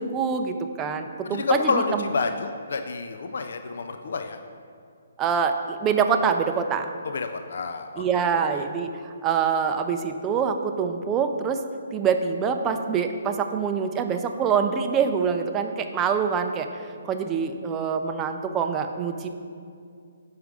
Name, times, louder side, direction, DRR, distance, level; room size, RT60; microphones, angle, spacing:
voice 1, 0.0-2.0 5.2-6.9 8.0-11.6 11.9-16.7 17.0-19.3, right 6 dB, 20° right, 6 dB, 0.4 m, -25 dB
voice 2, 1.2-4.4 7.0-8.2 8.5-8.7, left 4 dB, 65° left, 6 dB, 0.3 m, -28 dB
4.7 x 4.7 x 5.2 m, 2.3 s
hypercardioid pair, 145°, 0 cm